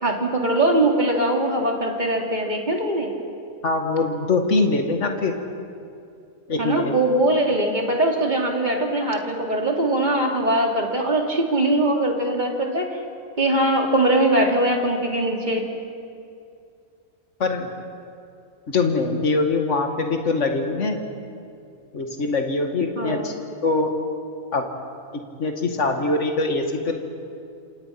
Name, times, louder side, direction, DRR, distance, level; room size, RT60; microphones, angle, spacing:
voice 1, 0.0-3.1 6.6-13.0 13.4-15.7 23.0-23.3, right 1 dB, 30° right, 1 dB, 2.9 m, -21 dB
voice 2, 3.6-5.3 6.5-6.9 17.4-17.7 18.7-21.0 21.9-23.3 23.6-23.9 24.5-24.6 25.4-26.9, left 3 dB, 50° left, 4 dB, 2.3 m, -23 dB
27.5 x 27.5 x 6.0 m, 2.4 s
omnidirectional pair, 1.6 m